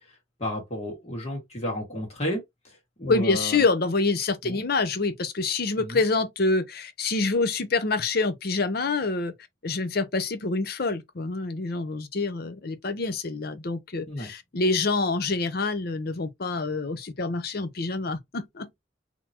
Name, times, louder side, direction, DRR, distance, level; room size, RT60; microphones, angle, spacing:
voice 1, 0.4-3.6 4.4-4.7 5.8-6.0 14.1-14.3, equal, 35° left, 1.8 m, -32 dB
voice 2, 3.1-9.3 9.6-18.8, left 3 dB, 55° left, 0.7 m, -26 dB
3.9 x 2.9 x 2.8 m
head